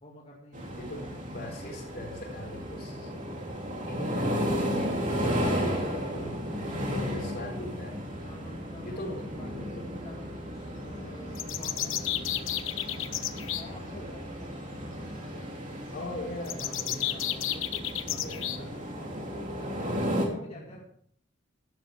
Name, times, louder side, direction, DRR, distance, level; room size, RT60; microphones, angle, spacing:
voice 1, 0.0-1.3 5.9-7.0 8.2-9.7 10.0-15.5 16.4-20.8, left 1 dB, 30° left, -3 dB, 2.4 m, -50 dB
sound 1, 0.5-20.3, equal, 40° right, 2.9 m, -34 dB
voice 2, 0.8-3.1 3.8-8.2 8.8-10.0 15.9-17.1 18.2-18.5 20.3-20.8, left 1 dB, 55° left, 1 dB, 4.1 m, -41 dB
sound 2, 11.4-13.6 16.4-18.6, left 12 dB, 80° left, 1.0 m, -32 dB
14.0 x 12.0 x 3.7 m, 0.62 s
head